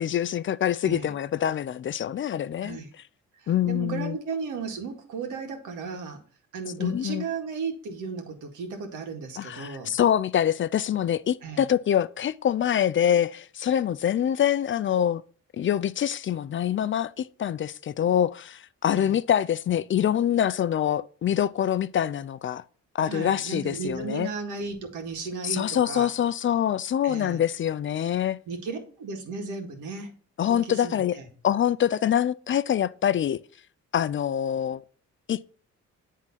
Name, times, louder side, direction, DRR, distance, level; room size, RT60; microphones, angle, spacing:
voice 1, 0.0-2.8 3.5-4.2 6.8-7.2 9.4-15.2 15.6-22.6 22.9-24.3 25.4-28.4 30.4-31.1 31.4-33.4 33.9-34.8 35.3-35.4, left 10 dB, 40° left, 0.4 m, -25 dB
voice 2, 3.3-6.2 6.5-9.9 11.4-11.7 18.9-19.2 23.0-26.1 27.0-27.4 28.5-30.1 30.4-31.3, right 5 dB, 85° right, 2.0 m, -35 dB
10.5 x 3.7 x 4.1 m
cardioid pair, 90°, 30 cm